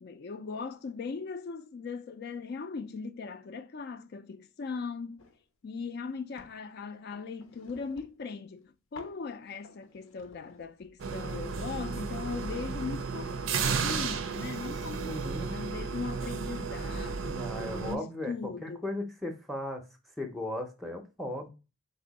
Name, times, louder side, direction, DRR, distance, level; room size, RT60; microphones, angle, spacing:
voice 1, 0.0-5.3 5.6-18.9, left 5 dB, 50° left, 0.4 m, -39 dB
sound 1, 5.2-5.4 5.9-6.6 7.1-8.3 8.9-9.3 9.6-11.0, left 3 dB, 85° left, 0.7 m, -55 dB
sound 2, 11.0-18.0, right 5 dB, 70° right, 0.5 m, -33 dB
voice 2, 15.1-15.5 17.2-18.3 18.6-19.8 20.2-21.5, left 1 dB, ahead, 0.6 m, -36 dB
4.2 x 2.7 x 3.9 m
head